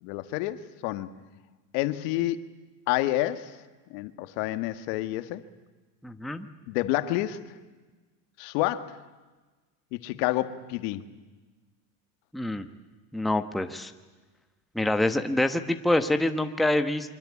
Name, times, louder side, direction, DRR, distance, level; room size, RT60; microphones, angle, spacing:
voice 1, 0.0-1.1 1.7-2.4 2.9-3.5 3.9-5.4 6.7-7.4 8.4-9.0 9.9-11.0, left 15 dB, 70° left, 1.8 m, -29 dB
voice 2, 6.0-6.5 12.3-12.6 13.1-13.9 14.7-17.1, left 1 dB, ahead, 1.2 m, -26 dB
27.5 x 24.5 x 8.6 m
supercardioid pair, 130°, 49 cm